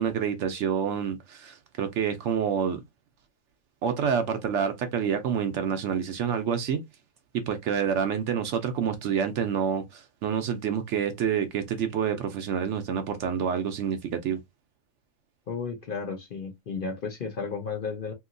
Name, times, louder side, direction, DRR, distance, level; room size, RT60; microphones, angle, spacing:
voice 1, 0.0-2.8 3.8-6.8 7.5-14.4, right 7 dB, 70° right, 0.8 m, -28 dB
voice 2, 15.5-18.1, left 5 dB, 50° left, 0.7 m, -33 dB
2.8 x 2.7 x 2.5 m
omnidirectional pair, 1.4 m